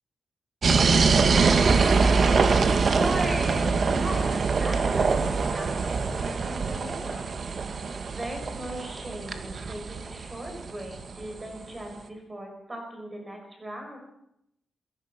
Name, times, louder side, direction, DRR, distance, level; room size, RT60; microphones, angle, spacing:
sound 1, 0.6-11.3, right 4 dB, 40° right, 1.8 m, -24 dB
voice 1, 1.6-7.4 8.0-14.0, right 1 dB, 15° right, 2 dB, 6.2 m, -38 dB
29.5 x 17.5 x 6.0 m, 0.79 s
wide cardioid pair, 180°, 0 cm